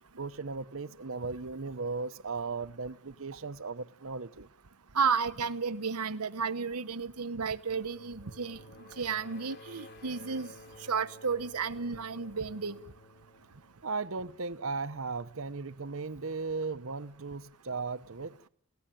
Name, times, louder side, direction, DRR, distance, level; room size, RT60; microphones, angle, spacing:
voice 1, 0.2-4.5 13.8-18.4, right 4 dB, 60° right, 0.9 m, -36 dB
voice 2, 4.9-8.6 9.0-10.5 10.9-12.8, right 5 dB, 90° right, 1.1 m, -32 dB
sound 1, 7.7-14.3, left 1 dB, 45° left, 4.1 m, -53 dB
28.5 x 16.5 x 9.1 m
head